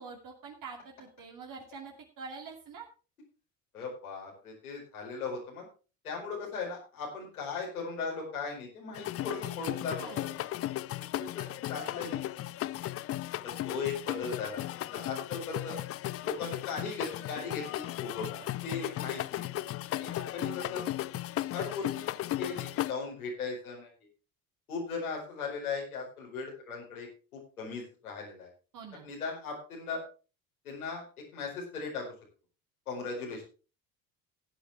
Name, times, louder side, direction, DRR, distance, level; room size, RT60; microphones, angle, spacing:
voice 1, 0.0-2.8 10.0-10.4 28.7-29.1, right 4 dB, 50° right, 0 dB, 2.6 m, -45 dB
voice 2, 3.7-5.6 6.0-10.3 11.0-12.2 13.4-14.6 14.9-15.8 16.2-19.4 19.9-20.8 21.5-22.1 22.4-23.9 24.7-28.5 29.0-30.0 30.6-31.0 31.3-32.1 32.9-33.4, left 4 dB, 85° left, -2 dB, 4.7 m, -38 dB
sound 1, 8.9-22.9, left 14 dB, 35° left, 0.5 m, -36 dB
16.5 x 9.1 x 3.4 m, 0.34 s
hypercardioid pair, 65°, 42 cm